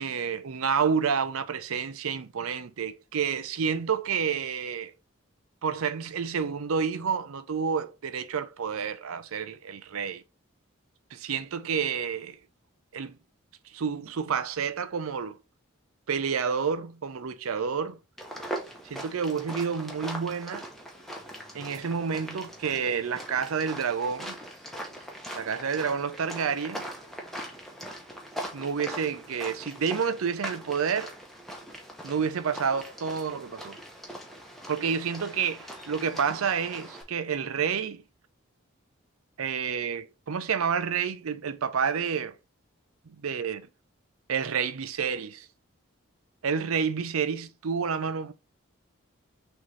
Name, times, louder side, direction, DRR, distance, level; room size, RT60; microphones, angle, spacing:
voice 1, 0.0-4.9 5.6-10.2 11.1-12.4 12.9-13.2 13.7-15.4 16.1-18.0 18.8-20.7 21.5-24.3 25.3-26.9 28.5-31.1 32.0-33.8 34.7-38.0 39.4-42.3 43.1-43.6 44.3-45.5 46.4-48.3, right 6 dB, 85° right, 0.5 m, -29 dB
sound 1, 18.2-37.0, equal, ahead, 0.8 m, -41 dB
6.2 x 2.7 x 3.1 m
head